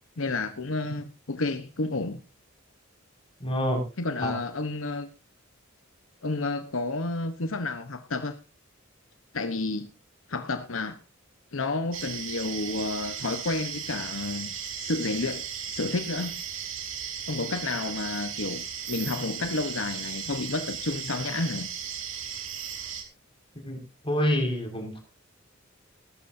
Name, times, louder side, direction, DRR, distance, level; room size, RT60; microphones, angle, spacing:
voice 1, 0.2-2.2 4.0-5.1 6.2-8.4 9.3-9.9 10.3-11.0 11.5-16.4 17.3-21.7, left 3 dB, 75° left, 1.1 m, -31 dB
voice 2, 3.4-3.8 4.2-4.3 23.6-23.8 24.0-25.0, equal, 25° left, 5.8 m, -26 dB
sound 1, 11.9-23.0, right 8 dB, 70° right, 3.3 m, -36 dB
20.0 x 12.5 x 2.7 m
head